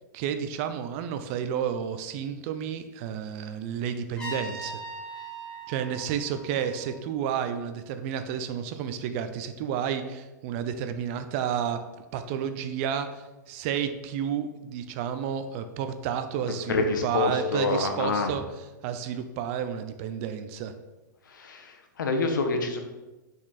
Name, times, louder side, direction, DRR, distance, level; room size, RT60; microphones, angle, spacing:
voice 1, 0.1-4.8 5.7-11.8 12.1-18.4 18.8-20.7, right 8 dB, 45° right, 9 dB, 0.6 m, -31 dB
Trumpet, 4.2-7.1, right 1 dB, 5° left, 1.8 m, -40 dB
voice 2, 16.7-18.3 21.3-22.8, left 3 dB, 85° left, 4 dB, 1.1 m, -27 dB
6.1 x 4.4 x 4.1 m, 1.1 s
hypercardioid pair, 135°, 10 cm